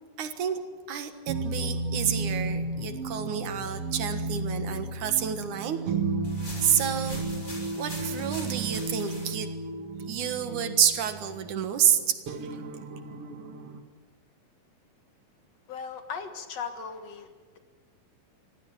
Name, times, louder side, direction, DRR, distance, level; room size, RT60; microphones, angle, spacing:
voice 1, 0.2-0.6 0.9-5.8 6.6-7.2 7.8-9.5 10.1-12.7, right 9 dB, 75° right, 9 dB, 3.0 m, -29 dB
sound 1, 1.3-13.8, right 3 dB, 55° right, 2.3 m, -33 dB
sound 2, 6.2-9.3, left 1 dB, 20° left, 6.7 m, -42 dB
voice 2, 15.7-17.3, left 6 dB, 60° left, 8 dB, 2.5 m, -37 dB
26.0 x 17.0 x 9.0 m, 1.5 s
omnidirectional pair, 3.6 m